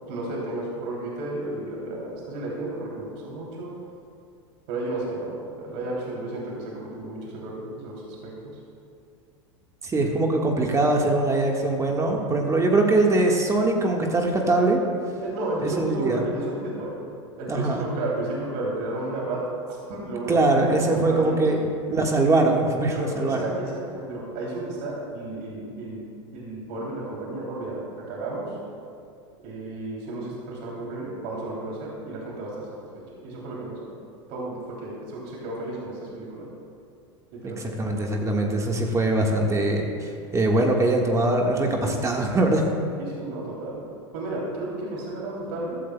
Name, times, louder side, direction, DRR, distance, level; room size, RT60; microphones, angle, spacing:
voice 1, 0.1-3.7 4.7-8.3 15.2-17.0 17.4-19.4 19.7-21.4 22.9-26.1 26.3-27.8 28.1-28.6 29.4-32.7 33.2-33.8 34.3-36.5 37.4-37.6 43.0-43.8 44.1-45.8, right 2 dB, 60° right, -4 dB, 3.0 m, -32 dB
voice 2, 9.8-14.8 15.6-16.2 17.5-17.8 20.3-23.4 37.4-42.6, right 2 dB, 20° right, 1 dB, 1.6 m, -22 dB
15.0 x 13.5 x 2.3 m, 2.4 s
hypercardioid pair, 95°, 15 cm